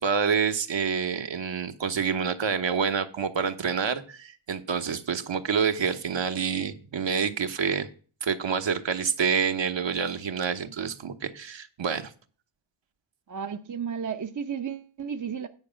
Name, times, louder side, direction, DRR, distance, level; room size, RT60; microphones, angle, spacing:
voice 1, 0.0-7.9 8.2-12.1, right 6 dB, 60° right, 1.2 m, -27 dB
voice 2, 13.3-15.5, right 7 dB, 40° right, 0.8 m, -33 dB
9.6 x 4.9 x 7.4 m
cardioid pair, 65°, 49 cm